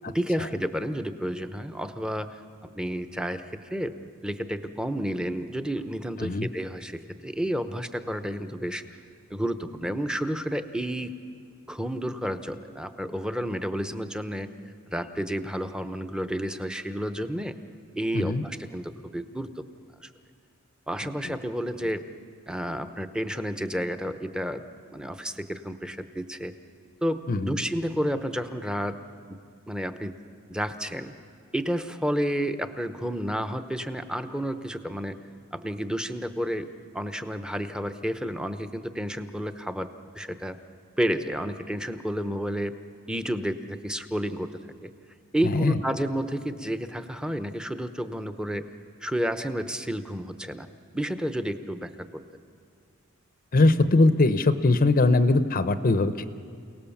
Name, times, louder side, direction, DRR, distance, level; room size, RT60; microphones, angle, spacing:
voice 1, 0.1-3.4 3.7-3.9 4.2-8.8 9.3-11.1 11.7-14.5 14.9-17.5 17.9-19.6 20.0-20.1 20.9-22.0 22.5-24.6 24.9-26.5 27.0-29.0 29.3-29.4 29.7-30.2 30.5-31.1 31.5-35.2 35.5-36.7 36.9-39.9 40.1-40.6 41.0-42.8 43.1-44.9 45.3-48.7 49.0-50.7 50.9-52.2, equal, 5° right, 9 dB, 0.8 m, -31 dB
voice 2, 27.3-27.6 45.4-45.8 53.5-56.2, left 2 dB, 40° left, 12 dB, 0.7 m, -21 dB
29.5 x 18.0 x 7.2 m, 2.3 s
head